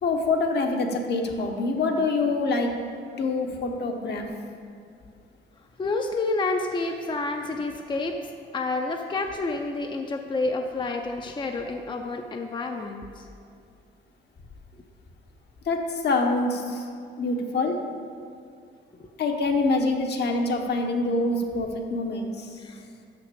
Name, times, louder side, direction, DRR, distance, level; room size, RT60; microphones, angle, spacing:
voice 1, 0.0-2.7 3.2-4.3 15.6-16.9 17.2-17.8 19.2-22.6, left 3 dB, 60° left, 3 dB, 1.1 m, -25 dB
voice 2, 5.8-13.3 19.0-19.1 22.6-23.1, left 3 dB, 25° left, 3 dB, 0.6 m, -29 dB
6.1 x 5.9 x 6.8 m, 2.3 s
cardioid pair, 90°, 20 cm